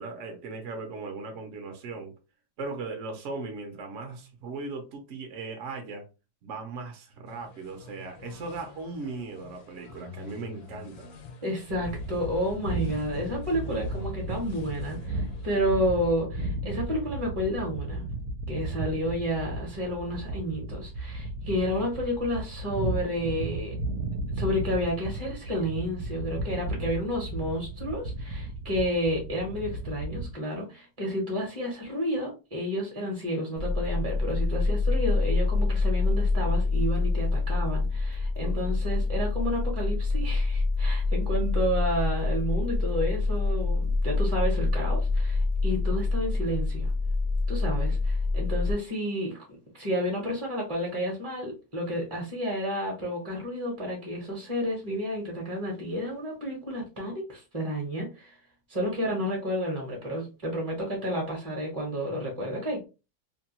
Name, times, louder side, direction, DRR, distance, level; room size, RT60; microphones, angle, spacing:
voice 1, 0.0-2.1 2.6-6.1 6.4-11.1 38.4-38.6, right 3 dB, 60° right, 0.8 m, -38 dB
sound 1, 7.3-15.6, left 5 dB, 75° left, 1.2 m, -47 dB
voice 2, 11.4-18.1 18.5-23.8 24.4-46.9 47.5-49.4 49.8-58.3 58.7-62.8, equal, 25° right, 0.7 m, -31 dB
sound 2, 11.7-30.3, right 2 dB, 75° right, 1.1 m, -34 dB
sound 3, 33.6-48.7, left 3 dB, 45° left, 0.7 m, -26 dB
2.8 x 2.2 x 2.8 m
omnidirectional pair, 1.8 m